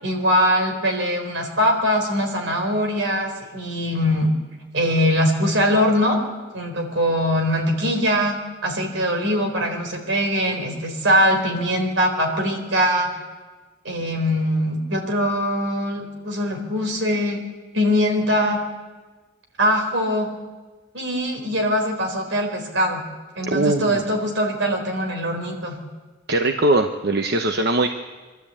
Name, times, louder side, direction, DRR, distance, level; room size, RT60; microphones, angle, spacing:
voice 1, 0.0-4.3 4.7-6.2 6.5-13.2 13.8-17.4 17.7-18.6 19.6-20.3 20.9-23.0 23.4-25.8, equal, 80° right, 3 dB, 4.1 m, -22 dB
voice 2, 23.5-24.0 26.3-27.9, right 2 dB, 60° right, 5 dB, 1.0 m, -20 dB
25.0 x 13.0 x 8.6 m, 1.3 s
head